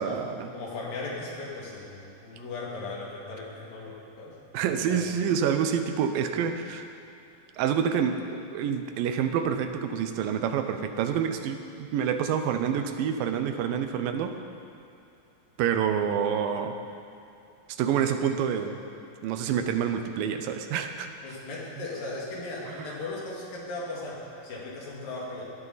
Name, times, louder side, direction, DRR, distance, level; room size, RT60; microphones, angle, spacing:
voice 1, 0.0-0.5 4.5-6.9 7.6-14.4 15.6-16.8 17.7-18.8 19.2-21.1 22.7-22.9, right 8 dB, 90° right, 7 dB, 2.5 m, -27 dB
voice 2, 0.5-4.4 4.6-5.1 6.4-6.5 21.2-25.5, left 2 dB, 80° left, -4 dB, 4.1 m, -37 dB
18.0 x 12.0 x 4.1 m, 2.7 s
omnidirectional pair, 3.9 m